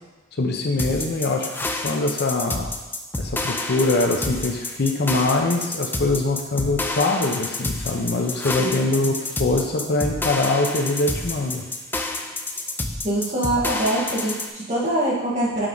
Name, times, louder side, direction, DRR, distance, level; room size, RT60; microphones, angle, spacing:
voice 1, 0.4-1.5 1.8-2.6 3.2-11.6, left 2 dB, 50° left, 2 dB, 0.7 m, -23 dB
sound 1, 0.8-14.5, left 2 dB, 10° left, 0.4 m, -29 dB
voice 2, 8.6-9.2 13.0-15.7, right 1 dB, 35° right, -6 dB, 1.8 m, -24 dB
7.8 x 4.7 x 3.9 m, 1.2 s
head